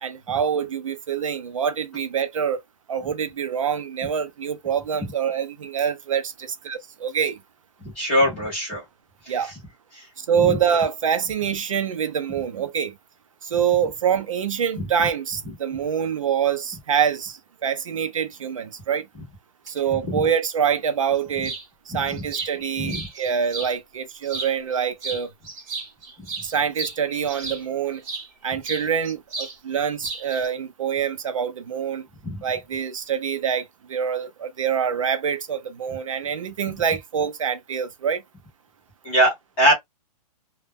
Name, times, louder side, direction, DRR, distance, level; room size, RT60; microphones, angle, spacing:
voice 1, 0.0-2.6 2.9-7.4 9.3-9.5 10.2-12.9 13.4-19.1 19.7-21.5 21.9-25.3 26.4-28.0 28.4-32.1 32.4-38.2, right 7 dB, 50° right, 0.4 m, -25 dB
voice 2, 7.8-8.8 9.9-10.0 10.4-10.6 21.9-22.1 22.8-23.1 32.2-32.4 39.0-39.7, equal, 5° left, 0.4 m, -22 dB
sound 1, 21.4-21.7 22.1-23.7 24.2-24.8 25.0-28.3 28.6-29.6 29.8-30.5, right 3 dB, 25° right, 0.8 m, -34 dB
2.1 x 2.0 x 3.4 m
hypercardioid pair, 180°, 21 cm